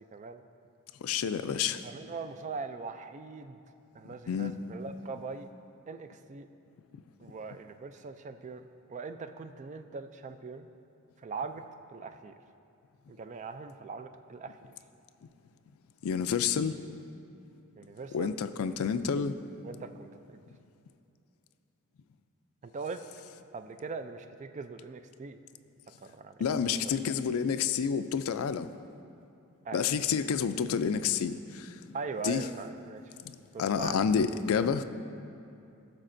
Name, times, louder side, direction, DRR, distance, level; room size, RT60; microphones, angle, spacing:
voice 1, 0.1-0.4 1.8-3.6 3.9-5.5 5.9-6.5 7.2-10.7 11.2-11.6 11.9-12.3 13.1-14.7 17.8-18.3 18.7-18.8 19.1-19.2 19.6-20.4 22.6-23.0 23.5-25.4 26.0-26.8 29.6-29.9 31.9-33.1 33.5-34.0, right 4 dB, 35° right, 9 dB, 0.3 m, -41 dB
voice 2, 1.0-1.8 4.1-4.5 16.0-16.7 18.1-19.3 26.4-28.7 29.7-31.8 32.2-32.4 33.3-34.8, left 7 dB, 70° left, 11 dB, 0.4 m, -29 dB
15.5 x 6.4 x 2.6 m, 2.7 s
head